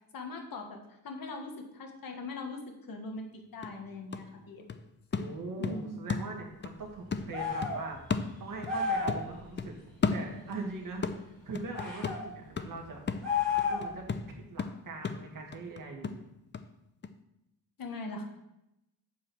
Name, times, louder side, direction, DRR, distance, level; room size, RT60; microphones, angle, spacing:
voice 1, 0.1-4.6 5.6-5.9 17.8-18.3, left 3 dB, 65° left, 3 dB, 1.7 m, -41 dB
sound 1, 3.2-3.3 3.6-6.8 7.1-8.8 9.1-10.7 11.0-16.7 17.0-17.1, left 5 dB, 30° left, 0.5 m, -36 dB
voice 2, 5.2-9.8 10.1-13.0 13.7-16.2, right 3 dB, 60° right, 0 dB, 2.1 m, -41 dB
sound 2, 7.3-7.8 8.6-9.2 11.7-12.2 13.2-14.0, left 5 dB, ahead, 2.8 m, -31 dB
8.3 x 4.7 x 7.0 m, 0.87 s
wide cardioid pair, 130°, 37 cm